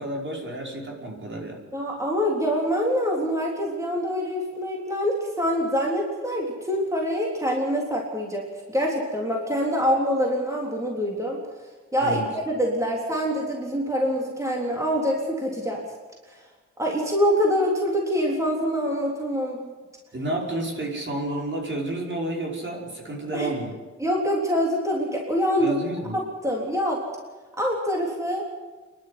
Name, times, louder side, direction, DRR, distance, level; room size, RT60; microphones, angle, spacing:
voice 1, 0.0-1.6 12.0-12.2 20.1-23.7 25.6-26.1, right 1 dB, 40° right, -1 dB, 5.3 m, -30 dB
voice 2, 1.7-11.4 11.9-15.8 16.3-16.4 16.8-19.7 23.3-23.5 24.0-25.8 26.1-27.0 27.6-28.5, equal, 10° right, -2 dB, 3.7 m, -25 dB
27.5 x 11.5 x 9.6 m, 1.3 s
wide cardioid pair, 95°, 29 cm